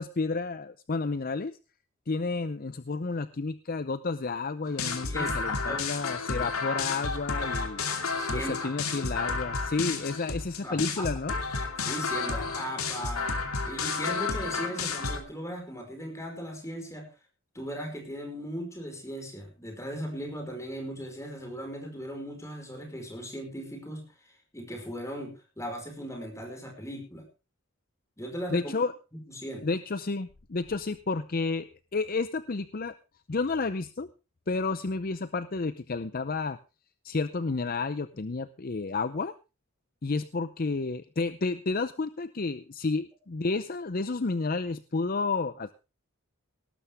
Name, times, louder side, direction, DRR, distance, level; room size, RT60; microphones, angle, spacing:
voice 1, 0.0-1.6 2.1-7.8 8.3-11.4 28.5-28.9 29.6-33.0 33.3-34.1 34.5-36.6 37.0-39.3 40.0-45.8, left 3 dB, 45° left, 13 dB, 0.6 m, -31 dB
sound 1, 4.7-15.2, left 4 dB, 85° left, 2.7 m, -31 dB
voice 2, 5.0-5.9 8.2-8.7 10.6-11.1 11.8-13.3 13.6-17.1 17.5-24.1 24.5-27.2 28.2-28.7 29.1-29.6, equal, 15° left, 4 dB, 5.1 m, -38 dB
18.5 x 12.5 x 3.5 m, 0.30 s
head